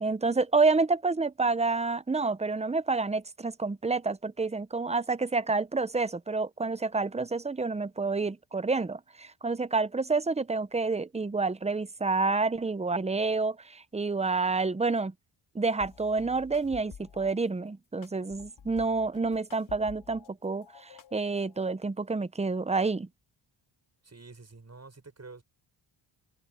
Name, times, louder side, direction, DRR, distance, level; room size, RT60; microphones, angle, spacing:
voice 1, 0.0-15.1 15.5-23.1, right 3 dB, 15° right, 0.7 m, -28 dB
sound 1, 15.8-17.3 18.0-20.3 20.6-21.6, left 7 dB, 65° left, 2.7 m, -50 dB
voice 2, 24.0-25.4, right 3 dB, 30° right, 6.3 m, -48 dB
open air
wide cardioid pair, 100°, 50 cm